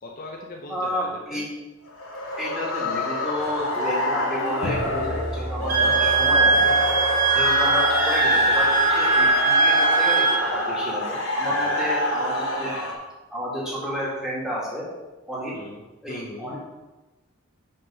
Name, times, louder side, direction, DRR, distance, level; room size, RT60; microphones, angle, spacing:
voice 1, 0.0-1.5 5.6-6.2 11.5-11.8 15.5-16.6, left 2 dB, 40° left, 0 dB, 0.7 m, -40 dB
voice 2, 0.7-1.5 2.4-6.8 7.3-12.8 13.3-14.9 15.3-15.5 16.0-16.6, equal, 5° right, -6 dB, 2.0 m, -31 dB
sound 1, 1.9-12.9, left 1 dB, 80° left, 1.6 m, -26 dB
sound 2, 4.6-9.7, equal, 65° right, 1.1 m, -36 dB
Wind instrument woodwind instrument, 5.7-10.4, right 4 dB, 40° right, 0.7 m, -21 dB
5.9 x 5.3 x 5.5 m, 1.1 s
head